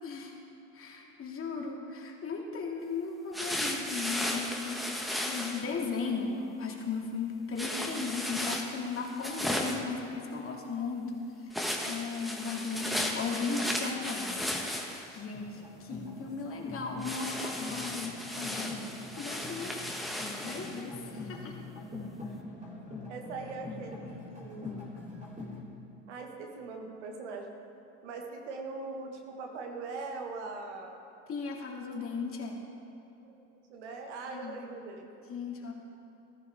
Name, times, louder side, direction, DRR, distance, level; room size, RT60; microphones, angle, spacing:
voice 1, 0.0-0.3 0.7-11.2 11.5-14.4 15.1-18.8 19.2-19.8 20.4-21.5 31.3-32.6 34.3-34.6 35.3-35.7, left 4 dB, 40° left, 0 dB, 2.3 m, -36 dB
sound 1, 3.3-5.6 7.6-9.9 11.5-15.2 17.0-20.8, left 1 dB, ahead, 1.4 m, -35 dB
sound 2, 15.3-25.6, left 2 dB, 20° right, 3.1 m, -44 dB
voice 2, 23.1-24.9 26.1-27.6 28.0-31.0 33.2-35.3, right 3 dB, 90° right, 3 dB, 1.6 m, -41 dB
14.0 x 14.0 x 3.5 m, 3.0 s
supercardioid pair, 85°, 34 cm